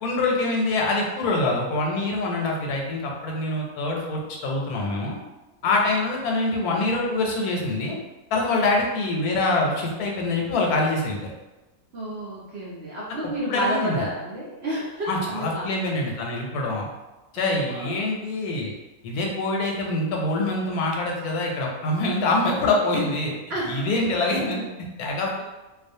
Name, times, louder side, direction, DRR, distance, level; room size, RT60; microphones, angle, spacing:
voice 1, 0.0-5.2 5.6-8.0 8.3-11.3 13.5-14.1 15.1-16.9 17.3-18.7 19.0-23.3 23.7-25.4, left 2 dB, 85° left, -1 dB, 1.1 m, -25 dB
voice 2, 11.9-15.7 16.6-16.7 17.4-18.0 23.5-23.9 24.2-24.7, right 1 dB, 60° right, -7 dB, 0.7 m, -31 dB
2.4 x 2.3 x 2.6 m, 1.1 s
omnidirectional pair, 1.6 m